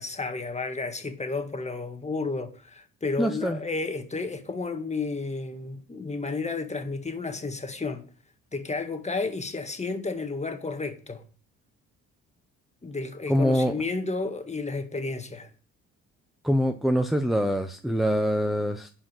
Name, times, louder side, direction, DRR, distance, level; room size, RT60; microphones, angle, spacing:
voice 1, 0.0-8.0 8.5-11.2 12.8-15.5, left 3 dB, 20° left, 1.7 m, -32 dB
voice 2, 3.2-3.6 13.3-13.7 16.4-18.9, equal, ahead, 0.8 m, -24 dB
11.0 x 5.1 x 7.6 m
cardioid pair, 90°, 30 cm